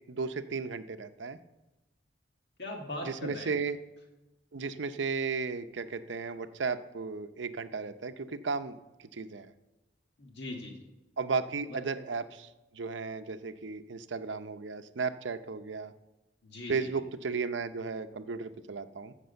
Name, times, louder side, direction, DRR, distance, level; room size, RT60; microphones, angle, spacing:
voice 1, 0.0-1.4 3.0-3.8 4.5-9.5 11.2-15.9 16.7-19.1, right 4 dB, 75° right, 10 dB, 0.7 m, -35 dB
voice 2, 2.6-3.6 10.2-10.8 11.7-11.8 16.4-17.0, left 1 dB, 60° left, 1 dB, 1.5 m, -40 dB
13.5 x 6.1 x 7.8 m, 1.0 s
head